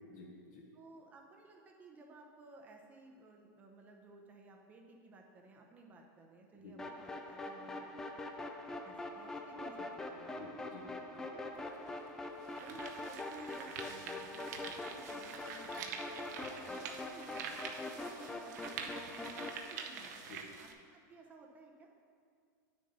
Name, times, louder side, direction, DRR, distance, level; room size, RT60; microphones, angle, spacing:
voice 1, 0.0-0.6 6.6-6.7 10.4-10.9 11.1-11.2 20.3-20.4, left 3 dB, 55° left, -3 dB, 1.2 m, -51 dB
voice 2, 0.7-8.2 8.6-10.5 11.1-11.4 12.6-20.2 20.6-21.9, right 3 dB, 15° right, 2 dB, 0.7 m, -57 dB
sound 1, 6.8-19.6, left 2 dB, 5° left, 0.3 m, -44 dB
sound 2, 11.5-11.6 12.2-20.7, right 6 dB, 55° right, 0.8 m, -46 dB
9.1 x 6.5 x 4.1 m, 2.2 s
supercardioid pair, 170°, 10 cm